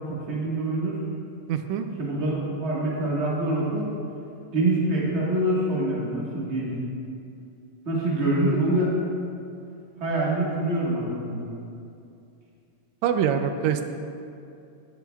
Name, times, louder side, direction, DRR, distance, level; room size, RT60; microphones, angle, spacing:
voice 1, 0.1-1.0 2.0-2.3 2.6-3.9 4.5-6.7 7.8-9.0 10.0-11.5, right 1 dB, 35° right, -5 dB, 1.1 m, -25 dB
voice 2, 1.5-1.9 13.0-13.9, right 8 dB, 80° right, 8 dB, 1.8 m, -24 dB
10.5 x 10.0 x 2.3 m, 2.5 s
omnidirectional pair, 3.3 m